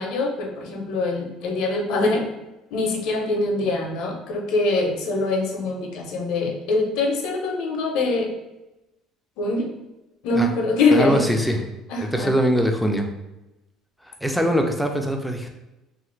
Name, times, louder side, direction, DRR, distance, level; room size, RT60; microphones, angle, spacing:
voice 1, 0.0-2.3 2.7-8.3 9.4-9.7 10.2-11.2 11.9-12.3, left 2 dB, 70° left, 2 dB, 0.5 m, -23 dB
voice 2, 10.9-11.6 12.0-13.1 14.1-15.5, equal, ahead, 3 dB, 0.3 m, -22 dB
2.8 x 2.4 x 3.0 m, 0.99 s
cardioid pair, 145°, 0 cm